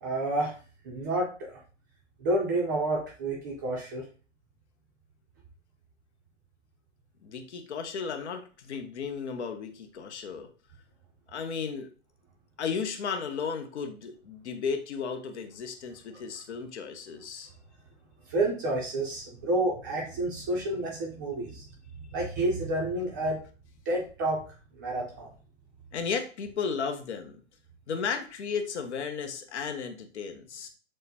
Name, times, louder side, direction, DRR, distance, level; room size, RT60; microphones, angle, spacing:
voice 1, 0.0-0.6 0.8-1.6 2.2-4.0 16.1-16.2 18.3-21.7 22.1-23.4 23.9-24.4 24.8-25.3, right 2 dB, 15° right, -2 dB, 0.5 m, -29 dB
voice 2, 7.2-10.5 11.3-11.9 12.6-17.5 25.9-27.4 27.9-30.7, left 6 dB, 60° left, 7 dB, 0.8 m, -34 dB
6.4 x 2.1 x 2.8 m, 0.37 s
hypercardioid pair, 155°, 38 cm